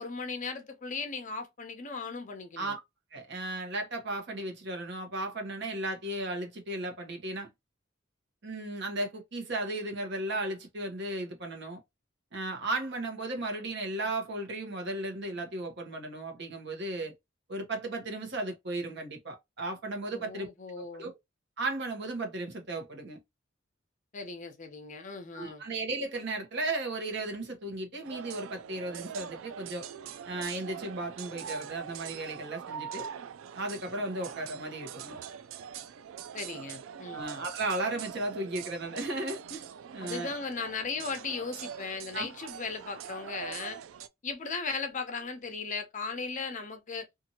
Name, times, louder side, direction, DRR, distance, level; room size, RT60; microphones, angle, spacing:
voice 1, 0.0-2.8 20.1-21.1 24.1-25.6 36.3-37.2 40.0-43.8 44.2-47.1, left 4 dB, 40° left, 0.7 m, -37 dB
voice 2, 3.1-7.5 8.4-11.8 12.3-17.1 17.5-20.5 21.0-21.1 21.6-23.2 25.3-29.8 30.2-33.1 33.5-35.2 37.1-39.6 39.9-40.3 42.1-42.3, right 2 dB, 60° right, 1.0 m, -35 dB
sound 1, 28.0-44.1, right 8 dB, 75° right, 0.3 m, -43 dB
2.7 x 2.6 x 2.8 m
head